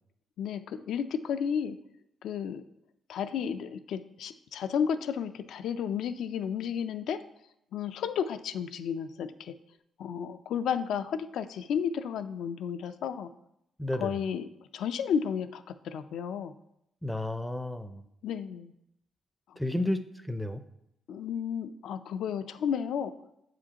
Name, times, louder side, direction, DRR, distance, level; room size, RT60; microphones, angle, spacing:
voice 1, 0.4-1.8 2.2-2.6 3.1-7.2 7.7-9.5 10.0-13.3 13.9-16.5 18.2-18.7 19.5-19.6 21.1-23.1, left 7 dB, 75° left, 11 dB, 0.3 m, -32 dB
voice 2, 13.8-14.1 17.0-18.0 19.6-20.6, left 1 dB, 5° left, 9 dB, 0.4 m, -32 dB
7.4 x 5.0 x 2.8 m, 0.80 s
cardioid pair, 115°, 0 cm